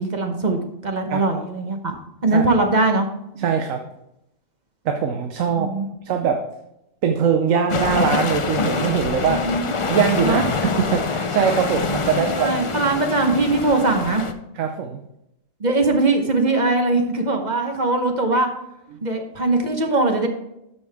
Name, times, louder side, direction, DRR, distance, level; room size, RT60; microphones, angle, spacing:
voice 1, 0.0-1.9 2.2-3.1 5.5-5.9 9.3-9.7 10.2-10.5 12.0-14.2 15.6-18.5 19.0-20.3, right 2 dB, 35° right, 4 dB, 1.1 m, -21 dB
voice 2, 3.4-3.8 4.8-5.7 6.0-6.4 7.0-9.4 9.8-12.5 14.6-15.0, right 7 dB, 80° right, 5 dB, 1.2 m, -22 dB
sound 1, 7.7-14.3, left 4 dB, 45° left, 0.4 m, -25 dB
13.0 x 5.7 x 3.5 m, 0.85 s
omnidirectional pair, 1.4 m